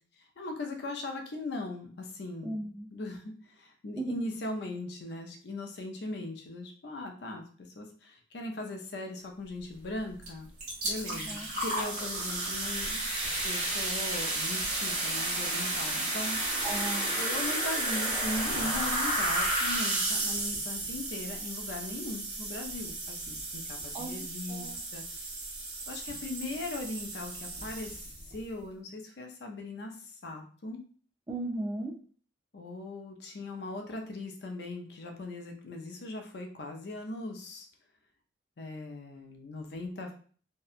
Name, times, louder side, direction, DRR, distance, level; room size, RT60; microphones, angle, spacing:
voice 1, 0.4-7.4 7.8-10.5 10.8-16.4 17.2-25.3 25.9-29.9 30.2-30.8 32.5-37.7 38.6-40.1, left 2 dB, 65° left, 3 dB, 0.5 m, -39 dB
voice 2, 2.4-2.9 4.0-4.1 11.0-11.5 16.6-17.2 23.9-24.1 24.5-24.8 31.3-31.9, right 2 dB, 20° right, -1 dB, 0.4 m, -36 dB
sound 1, 10.2-10.3 10.6-28.3, right 2 dB, 40° right, 1.1 m, -32 dB
2.7 x 2.1 x 2.4 m, 0.43 s
head